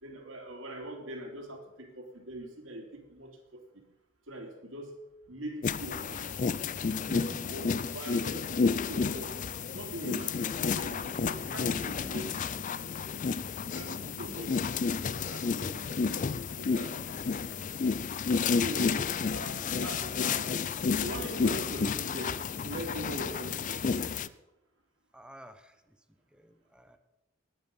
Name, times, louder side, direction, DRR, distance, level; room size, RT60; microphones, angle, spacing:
voice 1, 0.0-3.6 4.3-5.0 5.3-6.3 7.1-9.3 9.7-12.6 13.6-17.4 18.5-19.0 19.3-20.7 21.0-24.2, right 1 dB, 90° right, 1 dB, 3.1 m, -42 dB
sound 1, 5.6-24.3, left 5 dB, 40° left, 0.4 m, -31 dB
sound 2, 6.6-18.5, right 1 dB, 70° right, 2.0 m, -59 dB
voice 2, 7.1-7.5 11.4-12.3 13.8-14.1 18.9-19.4 25.1-26.0 26.3-27.0, equal, 5° right, 9 dB, 0.9 m, -50 dB
20.0 x 8.2 x 5.4 m, 0.94 s
head